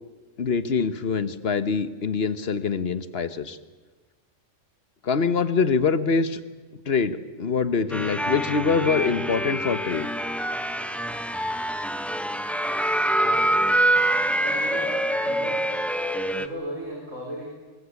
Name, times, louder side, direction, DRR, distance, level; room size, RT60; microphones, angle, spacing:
voice 1, 0.4-3.6 5.0-6.4 6.9-10.1, left 5 dB, 55° left, 12 dB, 1.3 m, -24 dB
sound 1, 7.9-16.5, right 1 dB, ahead, 0.8 m, -25 dB
voice 2, 14.3-14.9 15.2-15.6 16.3-17.4, right 1 dB, 85° right, -2 dB, 4.8 m, -35 dB
24.5 x 21.5 x 8.3 m, 1.4 s
omnidirectional pair, 1.3 m